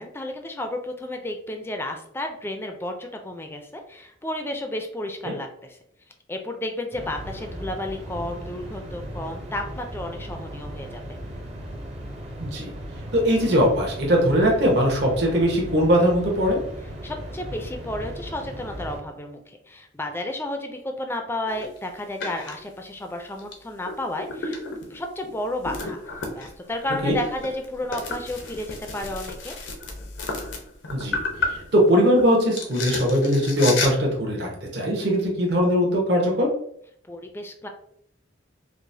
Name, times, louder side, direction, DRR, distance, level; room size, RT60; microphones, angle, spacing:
voice 1, 0.0-5.8 6.3-11.2 17.0-26.0 26.3-29.5 37.1-37.7, left 1 dB, 10° left, 4 dB, 0.4 m, -32 dB
sound 1, 6.9-19.0, equal, 35° right, 0.6 m, -37 dB
voice 2, 12.4-12.7 13.1-16.6 27.0-27.2 30.9-36.5, equal, 60° right, -1 dB, 0.9 m, -21 dB
sound 2, 21.5-21.8 22.2-22.6 23.4-23.5 23.8-32.2 32.5-33.9, left 3 dB, 85° left, 0.7 m, -32 dB
4.7 x 2.1 x 2.6 m, 0.69 s
head